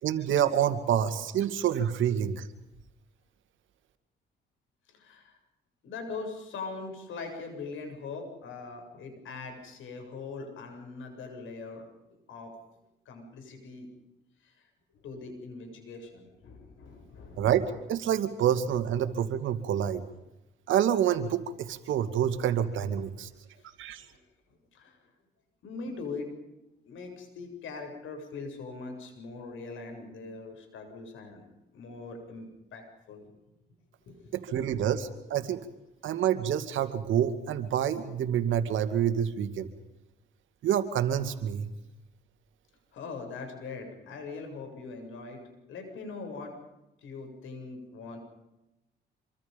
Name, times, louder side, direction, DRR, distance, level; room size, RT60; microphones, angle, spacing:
voice 1, 0.0-2.5 17.4-20.0 20.7-23.3 23.8-24.0 34.3-35.6 36.0-39.7 40.6-41.7, right 9 dB, 80° right, 9 dB, 2.4 m, -27 dB
voice 2, 4.9-5.4 5.8-11.8 12.3-12.5 13.1-13.9 14.4-14.5 15.0-17.5 23.6-23.7 24.1-24.2 24.7-25.0 25.6-26.6 26.8-31.4 31.7-33.3 34.1-34.9 42.9-46.6 47.0-48.2, left 4 dB, 80° left, 5 dB, 7.6 m, -41 dB
26.5 x 25.0 x 5.4 m, 0.93 s
cardioid pair, 90°, 20 cm